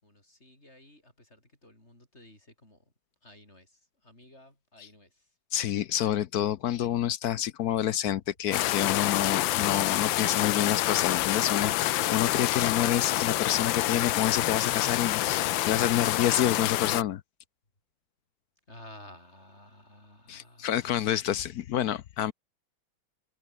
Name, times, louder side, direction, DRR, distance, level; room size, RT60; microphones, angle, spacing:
voice 1, 0.0-2.8 3.2-3.7 4.0-5.1 18.7-20.8, left 1 dB, 30° left, 8.2 m, -53 dB
voice 2, 5.5-17.2 20.3-22.3, left 11 dB, 65° left, 1.0 m, -28 dB
sound 1, 8.5-17.0, left 15 dB, 80° left, 1.4 m, -27 dB
omnidirectional pair, 2.1 m